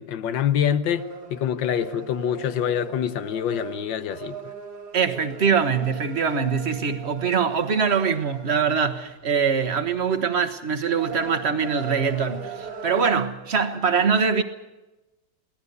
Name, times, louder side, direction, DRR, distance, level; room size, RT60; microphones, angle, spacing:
voice 1, 0.0-4.5, left 9 dB, 85° left, 1.6 m, -26 dB
sound 1, 1.0-9.2 9.7-10.0 10.4-13.2, right 5 dB, 85° right, 3.4 m, -39 dB
voice 2, 4.9-14.4, right 6 dB, 40° right, 1.3 m, -23 dB
22.5 x 18.0 x 6.8 m
omnidirectional pair, 2.0 m